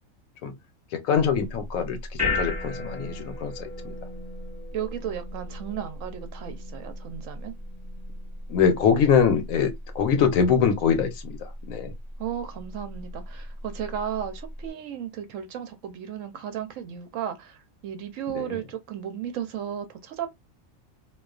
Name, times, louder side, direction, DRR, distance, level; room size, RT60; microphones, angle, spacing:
voice 1, 1.0-3.9 8.5-11.9 18.3-18.6, left 7 dB, 75° left, 1.0 m, -23 dB
sound 1, 1.2-14.7, left 2 dB, ahead, 1.0 m, -36 dB
voice 2, 4.7-7.6 12.2-20.3, right 9 dB, 70° right, 0.9 m, -34 dB
2.3 x 2.3 x 2.3 m
omnidirectional pair, 1.5 m